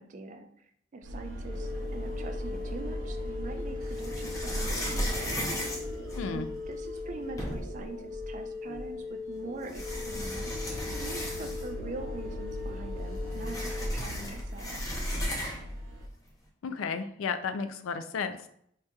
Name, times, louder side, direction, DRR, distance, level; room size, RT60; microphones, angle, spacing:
voice 1, 0.0-5.5 6.3-14.8, right 3 dB, 40° right, 6 dB, 0.3 m, -43 dB
sound 1, 1.0-7.8 8.1-8.4 8.7-8.9 9.3-16.1, equal, 85° right, 0.6 m, -39 dB
sound 2, 1.5-13.9, left 4 dB, 45° left, 0.8 m, -40 dB
sound 3, 2.3-3.1 3.9-6.6 7.1-7.2 7.4-7.9 8.9-9.0 9.6-11.8 12.1-12.2 12.5-15.8, equal, 15° left, 0.6 m, -35 dB
voice 2, 6.2-6.5 16.6-18.5, left 5 dB, 85° left, 10 dB, 0.4 m, -33 dB
4.8 x 2.8 x 2.3 m, 0.69 s
head